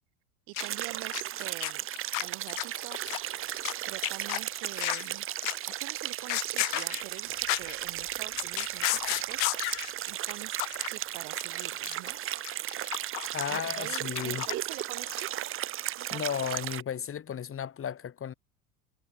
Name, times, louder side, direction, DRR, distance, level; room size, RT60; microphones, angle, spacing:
voice 1, 0.5-1.9 2.2-3.4 3.8-5.3 5.8-9.5 10.1-10.5 10.9-12.2 13.5-15.3 16.0-16.4, right 40 dB or more, 50° right, 3.4 m, -45 dB
sound 1, 0.6-3.7 4.0-5.1 5.4-5.7 6.1-7.7 8.1-9.9 10.3-10.4 10.6-10.9 11.2-14.8 15.1-15.2, left 40 dB or more, 45° left, 1.0 m, -33 dB
sound 2, 0.6-16.8, right 13 dB, 30° right, 1.0 m, -35 dB
voice 2, 13.3-14.4 16.1-18.3, left 8 dB, 30° left, 6.5 m, -34 dB
figure-of-eight pair, 75°, 43 cm